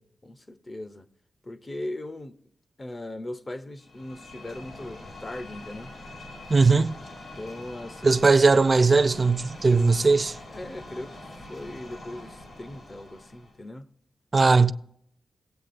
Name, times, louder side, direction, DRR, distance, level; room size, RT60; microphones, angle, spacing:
voice 1, 0.2-1.1 1.4-2.4 2.8-6.0 7.4-8.1 10.5-11.2 11.5-13.9, left 1 dB, 25° left, 0.6 m, -39 dB
sound 1, 3.8-13.6, left 1 dB, 60° left, 2.4 m, -44 dB
voice 2, 6.5-7.0 8.0-10.4 14.3-14.7, right 4 dB, 30° right, 0.4 m, -19 dB
17.5 x 8.3 x 2.5 m
wide cardioid pair, 135°, 0 cm